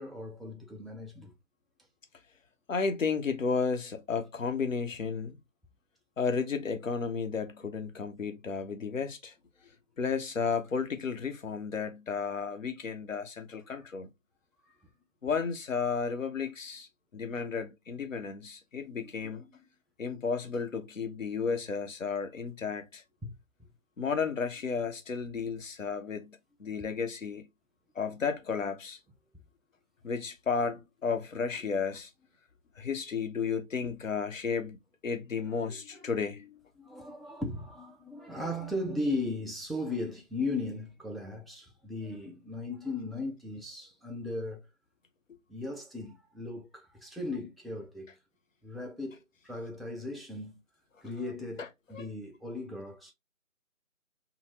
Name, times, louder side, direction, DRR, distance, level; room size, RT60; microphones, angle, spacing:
voice 1, 0.0-1.3 13.7-13.8 14.6-14.8 19.0-19.1 19.4-19.5 23.2-23.3 35.6-36.2 36.8-44.7 45.5-48.1 48.6-50.6 51.0-53.1, left 2 dB, ahead, 0.4 m, -37 dB
voice 2, 2.7-5.4 6.2-9.3 10.0-14.1 15.2-19.4 20.0-23.0 24.0-27.4 27.9-29.0 30.0-32.1 32.8-36.6 51.6-51.7 51.9-52.1, left 5 dB, 70° left, 0.8 m, -33 dB
3.8 x 2.0 x 2.7 m
figure-of-eight pair, 175°, 41 cm